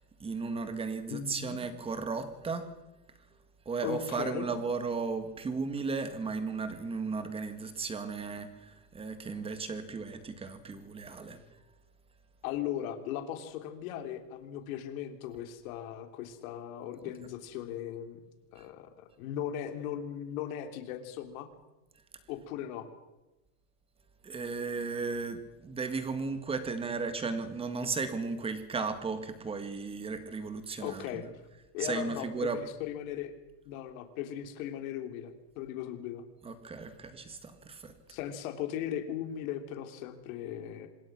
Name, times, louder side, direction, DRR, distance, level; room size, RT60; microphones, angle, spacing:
voice 1, 0.2-2.7 3.6-11.4 18.6-18.7 24.2-31.3 31.8-32.6 36.4-37.9, right 4 dB, 10° right, 10 dB, 1.7 m, -35 dB
voice 2, 1.1-1.6 3.8-4.5 12.4-18.2 18.5-21.5 22.3-22.9 30.8-31.2 31.7-33.3 33.6-36.2 38.1-40.9, left 10 dB, 60° left, 7 dB, 3.3 m, -38 dB
26.0 x 21.5 x 6.1 m, 1.0 s
supercardioid pair, 165°, 48 cm